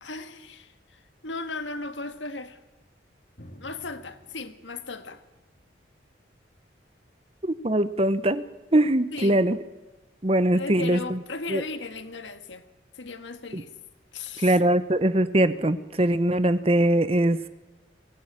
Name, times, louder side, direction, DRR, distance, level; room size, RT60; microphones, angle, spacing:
voice 1, 0.0-2.6 3.6-5.2 9.1-9.4 10.5-12.7 12.9-13.7 14.1-14.6, left 3 dB, 90° left, 1.7 m, -36 dB
Drum, 3.4-6.9, equal, 55° left, 3.7 m, -52 dB
voice 2, 7.4-8.4 8.7-9.6 10.2-11.2 11.5-11.6 13.5-13.6 14.4-17.5, right 1 dB, 30° right, 1.0 m, -22 dB
23.0 x 17.0 x 9.0 m
head